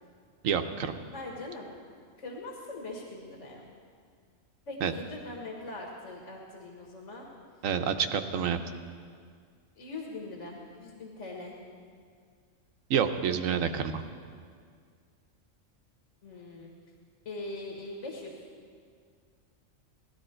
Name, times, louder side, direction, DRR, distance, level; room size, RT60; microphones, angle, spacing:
voice 1, 0.4-1.0 4.8-4.9 7.6-8.6 12.9-14.0, right 7 dB, 85° right, 7 dB, 1.1 m, -28 dB
voice 2, 1.1-1.7 2.2-3.6 4.7-7.3 9.8-11.6 16.2-16.7 17.3-18.3, left 2 dB, 65° left, -1 dB, 1.9 m, -41 dB
18.0 x 12.0 x 4.4 m, 2.1 s
omnidirectional pair, 1.4 m